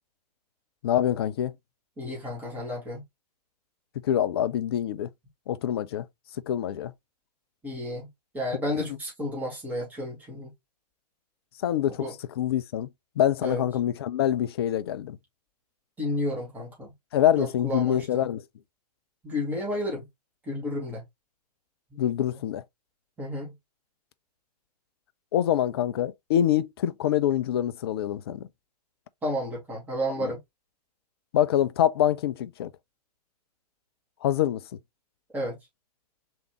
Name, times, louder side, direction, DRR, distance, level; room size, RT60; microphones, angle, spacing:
voice 1, 0.8-1.5 4.0-5.1 5.5-6.1 6.5-6.9 11.6-12.1 12.4-12.9 13.2-15.2 17.1-18.4 22.0-22.6 25.3-28.5 30.2-30.3 31.3-32.7 34.2-34.6, left 11 dB, 40° left, 0.4 m, -25 dB
voice 2, 2.0-3.0 7.6-8.1 8.3-10.5 12.0-12.1 13.4-13.6 16.0-16.9 17.4-18.3 19.2-20.1 20.4-21.0 21.9-22.0 23.2-23.5 29.2-30.4 35.3-35.6, left 1 dB, 10° right, 1.7 m, -31 dB
3.5 x 3.4 x 3.0 m
figure-of-eight pair, 115°, 21 cm